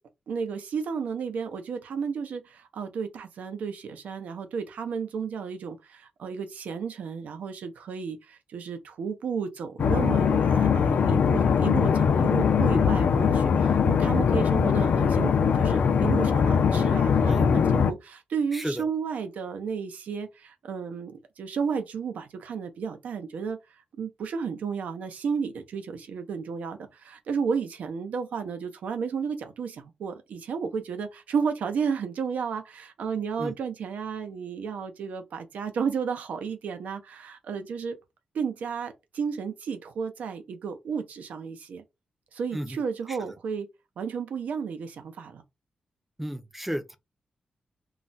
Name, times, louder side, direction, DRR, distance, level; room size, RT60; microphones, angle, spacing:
voice 1, 0.3-23.6 24.0-38.0 38.3-41.8 42.3-43.7 44.0-45.4, right 6 dB, 90° right, 0.5 m, -32 dB
sound 1, 9.8-17.9, left 6 dB, 70° left, 0.3 m, -22 dB
voice 2, 18.5-18.8 33.4-33.5 42.5-42.8 43.1-43.2 46.2-47.0, equal, 5° right, 0.4 m, -33 dB
2.3 x 2.1 x 3.9 m
wide cardioid pair, 125°, 3 cm